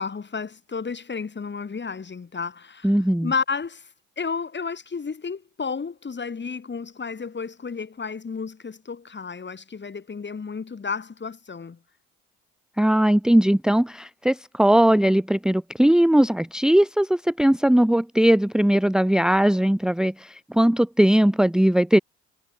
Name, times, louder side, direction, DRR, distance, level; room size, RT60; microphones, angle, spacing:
voice 1, 0.0-2.9 3.2-3.9 4.2-11.8, left 5 dB, 35° left, 5.6 m, -32 dB
voice 2, 2.8-3.3 12.8-22.0, right 1 dB, ahead, 1.1 m, -19 dB
hypercardioid pair, 60°, 32 cm